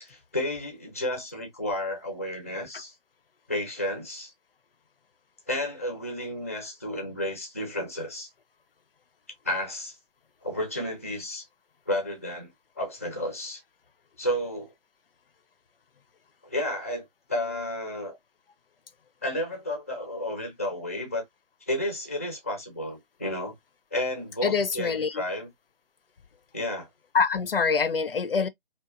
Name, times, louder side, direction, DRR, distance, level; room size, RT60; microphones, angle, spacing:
voice 1, 0.0-2.9 3.5-4.3 5.5-8.3 9.4-10.0 10.4-11.5 11.9-12.5 12.8-13.6 14.2-14.7 16.4-18.2 19.2-21.3 21.7-23.5 23.9-25.5 26.5-26.9, left 1 dB, 15° left, 0.4 m, -32 dB
voice 2, 24.4-25.2 27.1-28.5, left 5 dB, 75° left, 0.5 m, -25 dB
2.8 x 2.1 x 2.3 m
figure-of-eight pair, 150°, 29 cm